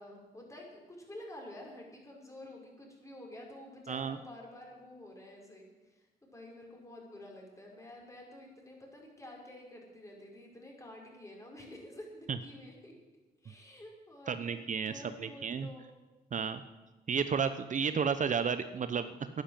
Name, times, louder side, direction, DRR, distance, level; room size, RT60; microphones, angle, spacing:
voice 1, 0.0-12.9 13.4-14.4 14.8-15.9, left 1 dB, 15° left, -1 dB, 5.6 m, -50 dB
voice 2, 14.3-15.7 16.3-16.6 17.1-19.4, right 6 dB, 45° right, 11 dB, 0.8 m, -32 dB
12.0 x 10.5 x 9.2 m, 1.2 s
cardioid pair, 75°, 17 cm